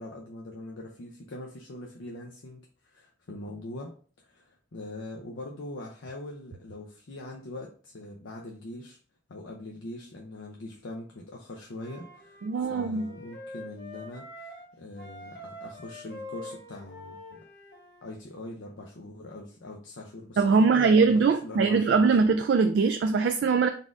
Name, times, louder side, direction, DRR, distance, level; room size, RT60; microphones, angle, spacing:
voice 1, 0.0-9.0 9.3-12.4 12.7-17.4 18.0-22.1, left 2 dB, 85° left, -1 dB, 0.6 m, -42 dB
Wind instrument woodwind instrument, 11.7-14.7 15.0-18.1, left 1 dB, 65° left, 1.3 m, -45 dB
voice 2, 12.4-13.1 20.4-23.7, right 4 dB, 65° right, 7 dB, 0.3 m, -22 dB
4.0 x 2.5 x 3.5 m, 0.42 s
head